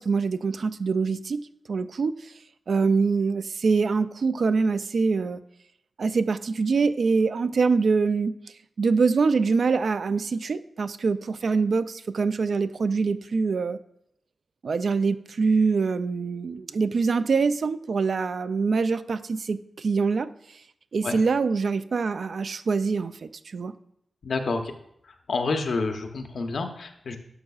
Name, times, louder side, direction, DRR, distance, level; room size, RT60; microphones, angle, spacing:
voice 1, 0.0-1.4 1.7-2.3 2.7-5.4 6.0-8.3 8.8-13.8 14.6-20.3 20.9-23.7, right 4 dB, 70° right, 12 dB, 0.3 m, -24 dB
voice 2, 24.2-24.7 25.0-27.2, left 3 dB, 75° left, 6 dB, 0.8 m, -29 dB
11.0 x 6.2 x 2.4 m, 0.74 s
wide cardioid pair, 80°, 0 cm